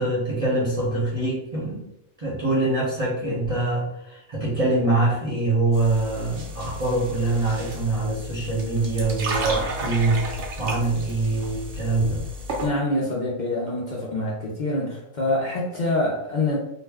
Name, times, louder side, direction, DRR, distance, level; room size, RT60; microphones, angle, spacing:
voice 1, 0.0-1.9 2.2-12.2, right 2 dB, 30° right, -6 dB, 0.7 m, -24 dB
sound 1, 5.7-12.7, right 1 dB, 65° right, 0.9 m, -33 dB
voice 2, 12.6-16.6, left 2 dB, 55° left, -4 dB, 0.5 m, -25 dB
2.5 x 2.1 x 3.4 m, 0.82 s
omnidirectional pair, 1.4 m